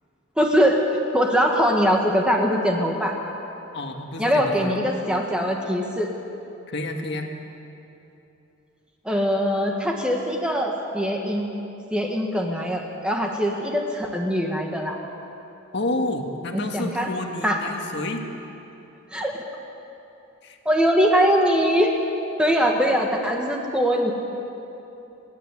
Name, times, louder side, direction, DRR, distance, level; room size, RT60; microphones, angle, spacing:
voice 1, 0.4-0.8 1.1-3.1 4.2-6.1 9.1-11.5 11.9-15.0 16.5-17.1 17.4-17.6 19.1-19.4 20.7-22.0 22.4-24.1, equal, 5° right, 1 dB, 1.7 m, -22 dB
voice 2, 3.7-4.8 6.7-7.3 15.7-18.3 20.4-20.6, left 2 dB, 55° left, 3 dB, 1.9 m, -29 dB
29.5 x 11.0 x 8.5 m, 2.9 s
head